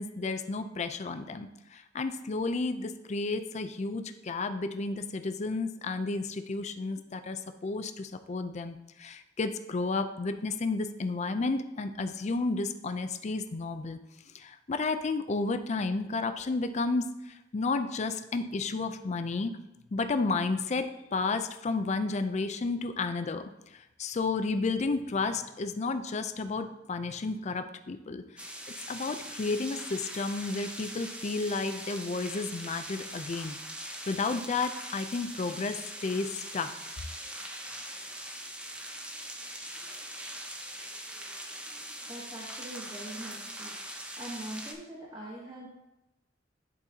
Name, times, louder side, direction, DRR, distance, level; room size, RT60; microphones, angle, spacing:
voice 1, 0.0-14.0 14.3-19.6 19.9-23.4 23.7-28.5 28.9-33.6 34.1-36.7, left 3 dB, 40° left, 9 dB, 0.4 m, -32 dB
sound 1, 28.4-44.7, right 1 dB, 5° right, 0.6 m, -42 dB
voice 2, 42.1-45.7, right 1 dB, 25° right, -6 dB, 1.3 m, -43 dB
11.0 x 4.0 x 2.8 m, 0.94 s
head